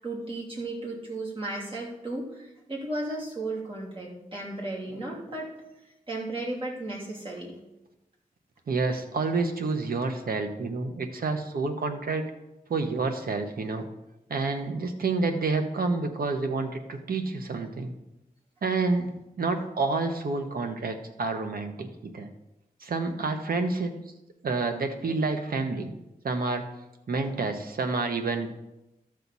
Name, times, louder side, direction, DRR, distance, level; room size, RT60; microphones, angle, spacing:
voice 1, 0.0-5.6 6.1-7.6, right 2 dB, 35° right, -4 dB, 3.0 m, -35 dB
voice 2, 8.7-12.2 12.7-13.8 14.3-17.9 18.6-19.1 19.4-22.3 22.8-23.9 24.4-25.9 26.2-26.6 27.1-28.5, right 3 dB, 75° right, 6 dB, 1.2 m, -29 dB
12.5 x 6.6 x 4.1 m, 0.94 s
wide cardioid pair, 115°, 15 cm